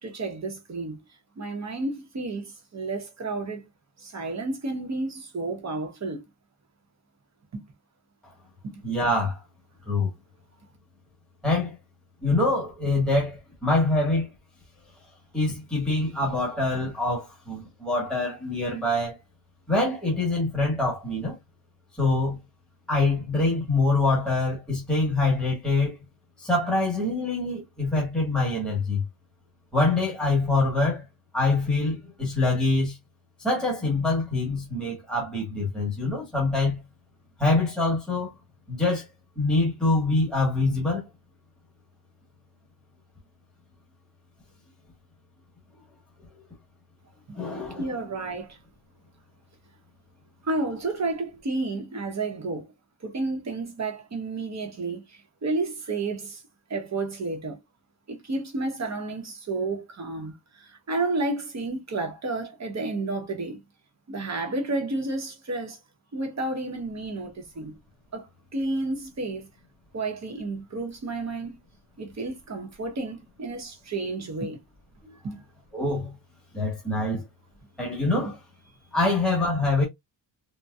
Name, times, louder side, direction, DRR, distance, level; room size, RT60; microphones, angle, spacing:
voice 1, 0.0-1.0 1.4-3.7 4.0-6.2 7.5-7.6 47.3-47.4 47.8-48.6 50.4-52.7 53.0-56.4 56.7-57.6 58.1-63.6 64.1-65.8 66.1-67.8 68.1-69.5 69.9-71.6 72.0-74.6 75.2-75.4, right 3 dB, 35° right, 0.9 m, -31 dB
voice 2, 8.8-9.4 9.9-10.1 11.4-11.7 12.2-14.3 15.3-19.2 19.7-21.4 22.0-22.4 22.9-26.0 26.4-29.0 29.7-31.0 31.3-33.0 33.4-36.8 37.4-38.3 38.7-39.1 39.3-41.1 46.3-46.4 47.3-47.9 75.0-75.2 75.7-76.1 76.5-77.2 77.8-78.4 78.9-79.8, left 2 dB, ahead, 1.4 m, -25 dB
4.1 x 2.2 x 2.3 m
wide cardioid pair, 150°, 48 cm